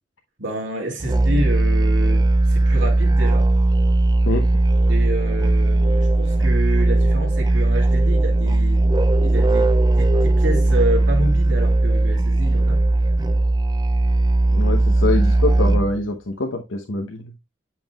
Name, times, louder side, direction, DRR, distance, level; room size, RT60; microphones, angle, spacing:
voice 1, 0.4-3.5 4.9-8.8 9.2-12.8, right 1 dB, 75° right, 2.4 m, -28 dB
Musical instrument, 1.0-16.0, right 2 dB, 20° right, 0.4 m, -18 dB
voice 2, 14.5-17.3, left 2 dB, 85° left, 0.9 m, -24 dB
9.0 x 5.9 x 2.3 m
head